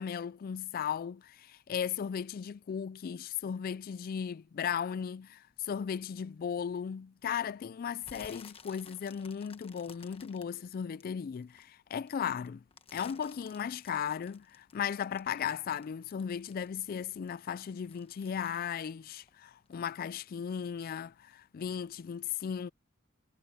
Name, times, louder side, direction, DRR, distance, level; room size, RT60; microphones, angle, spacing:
voice 1, 0.0-12.6 12.9-22.7, left 8 dB, 45° left, 0.3 m, -36 dB
sound 1, 8.0-11.6 12.0-16.8 17.1-19.8 20.1-20.5 20.9-21.0, left 5 dB, 25° left, 1.3 m, -55 dB
head